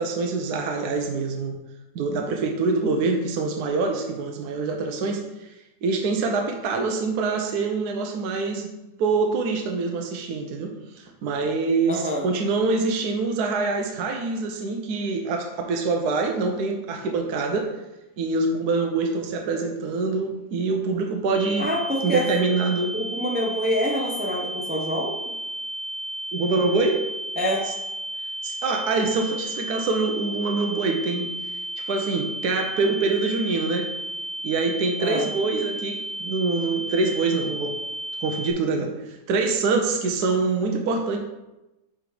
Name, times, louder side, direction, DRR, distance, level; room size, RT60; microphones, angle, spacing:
voice 1, 0.0-1.6 1.9-5.5 5.8-8.7 9.0-17.7 18.2-21.7 22.0-22.9 26.3-27.0 28.4-31.3 31.8-33.9 34.4-37.7 38.2-41.2, right 3 dB, 75° right, 3 dB, 1.2 m, -25 dB
voice 2, 11.9-12.2 21.6-22.2 22.9-25.3 27.4-27.6 35.0-35.2, equal, 10° right, -1 dB, 0.5 m, -26 dB
sound 1, 21.3-38.5, right 1 dB, 60° left, 1.4 m, -33 dB
7.5 x 3.5 x 4.8 m, 0.98 s
omnidirectional pair, 1.8 m